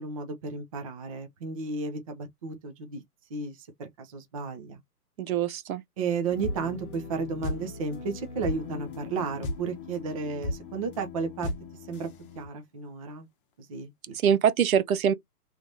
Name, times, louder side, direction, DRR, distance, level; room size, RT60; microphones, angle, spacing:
voice 1, 0.0-3.0 3.3-4.8 6.0-11.5 11.9-12.1 12.4-13.3 13.6-14.3, right 4 dB, 25° right, 0.5 m, -33 dB
voice 2, 5.2-5.8 14.2-15.1, right 8 dB, 60° right, 0.7 m, -23 dB
sound 1, 6.3-12.5, left 2 dB, 35° left, 0.8 m, -37 dB
3.3 x 3.2 x 2.6 m
hypercardioid pair, 145°, 47 cm